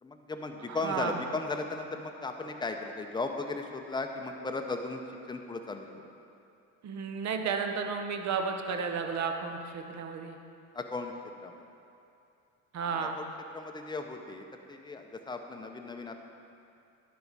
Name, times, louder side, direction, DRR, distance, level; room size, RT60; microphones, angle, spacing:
voice 1, 0.0-5.0 5.3-6.1 10.7-11.1 11.4-11.6 13.0-13.3 13.5-16.1, left 3 dB, 10° left, 4 dB, 0.7 m, -36 dB
voice 2, 0.6-1.2 6.8-10.4 12.7-13.2, right 5 dB, 45° right, 5 dB, 0.8 m, -33 dB
10.5 x 4.7 x 4.0 m, 2.6 s
supercardioid pair, 75°, 39 cm